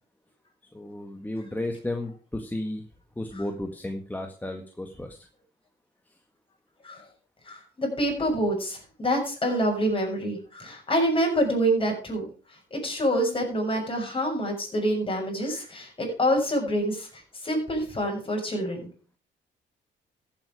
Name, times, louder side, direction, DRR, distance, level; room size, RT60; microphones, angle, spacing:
voice 1, 0.7-2.8 3.2-5.3, left 1 dB, 10° left, 4 dB, 1.8 m, -33 dB
voice 2, 7.5-12.2 12.7-17.1 17.4-18.9, equal, 25° left, 1 dB, 6.9 m, -26 dB
14.5 x 8.6 x 5.0 m, 0.39 s
cardioid pair, 90°, 20 cm